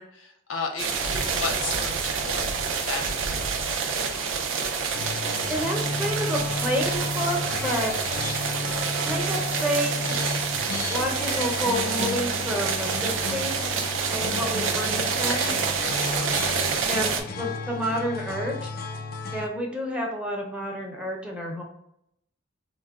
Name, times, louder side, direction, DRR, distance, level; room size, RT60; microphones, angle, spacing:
voice 1, 0.0-3.4 14.3-14.5 16.0-16.3, left 4 dB, 85° left, 3 dB, 0.6 m, -35 dB
sound 1, 0.8-17.2, right 5 dB, 80° right, 0.5 m, -28 dB
sound 2, 4.9-19.5, left 2 dB, 50° left, 0.3 m, -33 dB
voice 2, 5.5-7.9 8.5-8.6 9.0-10.2 10.9-13.7 14.1-15.5 16.8-18.7 19.3-21.6, equal, 5° right, -1 dB, 0.5 m, -29 dB
3.7 x 2.1 x 2.3 m, 0.76 s
head